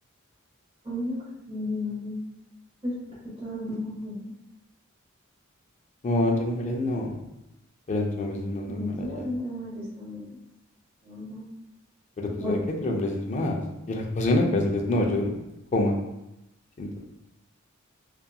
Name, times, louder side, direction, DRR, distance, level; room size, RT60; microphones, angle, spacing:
voice 1, 0.8-1.2 1.5-2.2 2.8-2.9 3.4-4.3 8.7-10.4 11.0-11.4 12.4-12.7, left 1 dB, 25° right, -8 dB, 0.8 m, -33 dB
voice 2, 6.0-7.1 7.9-9.3 12.2-13.6 13.9-15.4 15.7-15.9 16.8-16.9, left 1 dB, 35° left, 1 dB, 0.4 m, -26 dB
2.7 x 2.3 x 2.2 m, 0.88 s
head